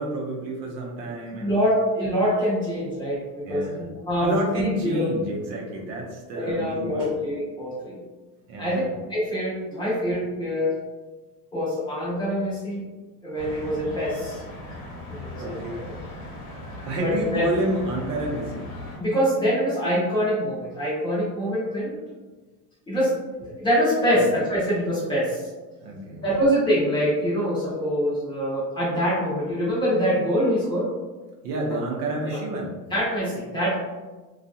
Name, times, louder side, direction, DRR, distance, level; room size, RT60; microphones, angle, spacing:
voice 1, 0.0-1.6 3.4-3.8 4.2-7.2 8.5-8.9 15.4-15.9 16.8-18.7 24.1-24.3 25.8-26.3 31.4-32.8, right 1 dB, 85° right, -1 dB, 0.9 m, -29 dB
voice 2, 1.4-3.7 4.1-5.1 6.3-8.0 8.6-8.8 9.1-10.8 11.5-12.8 13.2-14.4 15.1-15.6 17.0-17.5 19.0-22.0 22.9-25.5 26.2-30.9 32.2-32.4 32.9-33.8, equal, 10° left, -9 dB, 0.8 m, -24 dB
sound 1, 13.4-19.0, left 1 dB, 50° left, 0.9 m, -38 dB
2.7 x 2.4 x 2.2 m, 1.2 s
supercardioid pair, 150°, 47 cm